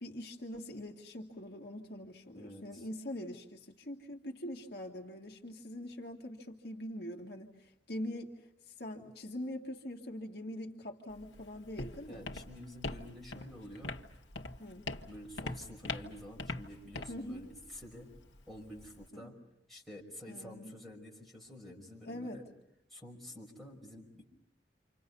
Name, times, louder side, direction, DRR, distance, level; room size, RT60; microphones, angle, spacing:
voice 1, 0.0-12.3 14.6-14.9 17.1-17.5 19.1-19.3 20.3-20.7 22.1-22.4, left 1 dB, 60° left, 1 dB, 2.0 m, -43 dB
voice 2, 2.3-2.8 12.1-13.9 15.0-18.2 18.5-19.4 19.7-22.5 22.9-24.3, left 1 dB, ahead, -3 dB, 5.4 m, -49 dB
Walk footsteps, 11.1-19.1, left 3 dB, 85° left, 1.5 m, -43 dB
29.5 x 27.0 x 5.5 m, 0.80 s
head